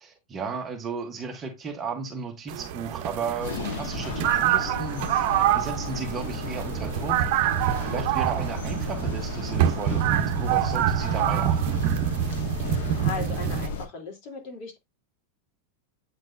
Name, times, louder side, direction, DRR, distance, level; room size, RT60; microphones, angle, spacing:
voice 1, 0.0-5.3 5.5-7.3 7.8-11.9, right 5 dB, 20° right, 1.2 m, -34 dB
sound 1, 2.5-13.7, right 10 dB, 55° right, 0.9 m, -26 dB
sound 2, 3.4-13.9, left 4 dB, 85° left, 1.3 m, -35 dB
voice 2, 12.6-14.8, left 4 dB, 50° left, 3.2 m, -37 dB
8.6 x 4.4 x 2.7 m
supercardioid pair, 150°, 0 cm